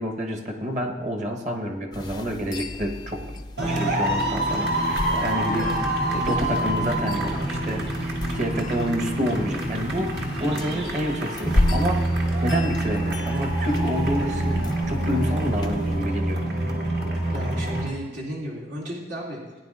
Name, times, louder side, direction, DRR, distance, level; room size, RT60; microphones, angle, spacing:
voice 1, 0.0-5.7 6.1-12.1 12.4-16.5, equal, 40° right, 2 dB, 1.2 m, -29 dB
sound 1, 1.9-16.0, left 1 dB, 25° left, 0.4 m, -33 dB
sound 2, 3.6-17.9, right 1 dB, 70° right, 2.0 m, -26 dB
voice 2, 17.3-19.6, right 1 dB, 90° right, -4 dB, 2.5 m, -34 dB
17.5 x 9.8 x 2.5 m, 1.3 s
head